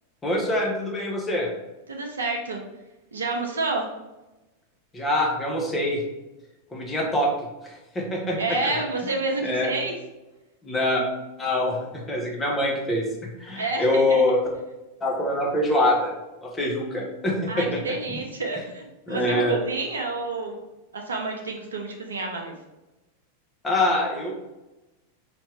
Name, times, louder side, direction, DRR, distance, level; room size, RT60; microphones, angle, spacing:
voice 1, 0.2-1.5 4.9-6.0 6.7-7.3 7.6-8.4 8.6-8.8 9.4-9.7 10.6-11.0 11.4-13.0 13.4-14.4 15.0-16.1 16.4-18.2 19.1-19.5 23.6-24.3, left 1 dB, 15° left, -2 dB, 1.3 m, -24 dB
voice 2, 1.9-2.6 3.1-3.9 8.4-9.9 13.5-14.4 17.5-20.6 20.9-22.5, right 3 dB, 70° right, 2 dB, 0.7 m, -29 dB
5.0 x 3.0 x 3.4 m, 1.0 s
figure-of-eight pair, 90°, 0 cm